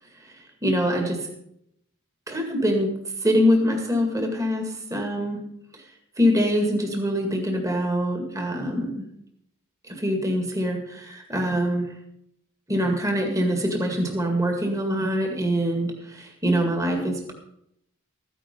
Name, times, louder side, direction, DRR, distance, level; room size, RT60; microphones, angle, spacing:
voice 1, 0.6-1.2 2.3-2.9 3.2-5.4 6.2-9.0 9.9-11.8 12.7-17.3, equal, 15° right, 2 dB, 2.0 m, -24 dB
14.0 x 10.0 x 5.3 m, 0.75 s
head